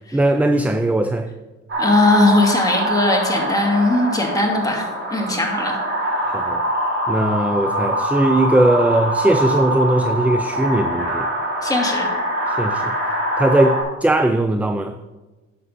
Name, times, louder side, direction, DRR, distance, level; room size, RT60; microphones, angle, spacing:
voice 1, 0.1-1.3 6.3-6.7 7.1-11.3 12.5-12.9 13.4-15.0, right 1 dB, 5° right, 9 dB, 0.4 m, -19 dB
sound 1, 1.7-13.8, equal, 40° right, 3.0 m, -23 dB
voice 2, 1.8-5.8 11.6-12.1, left 2 dB, 10° left, 0 dB, 2.3 m, -19 dB
11.0 x 6.9 x 4.1 m, 1.2 s
cardioid pair, 90°, 30 cm